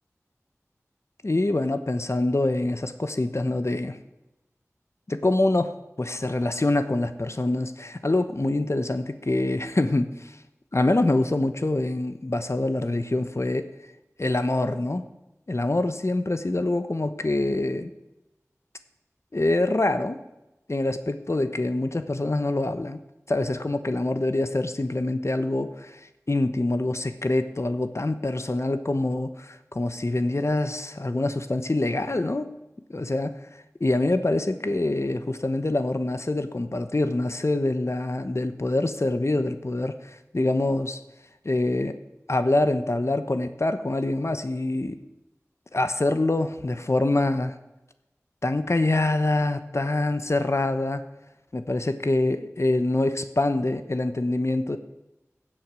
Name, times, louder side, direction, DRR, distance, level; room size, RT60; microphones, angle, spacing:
voice 1, 1.2-4.0 5.1-10.4 10.7-13.7 14.2-15.1 15.5-17.9 19.3-20.2 20.7-23.0 23.3-32.5 32.9-33.4 33.8-41.0 41.4-42.0 42.3-45.0 45.7-47.5 48.4-51.0 51.5-54.8, left 2 dB, 60° left, 10 dB, 1.0 m, -25 dB
16.0 x 7.7 x 6.3 m, 0.97 s
wide cardioid pair, 40°, 5 cm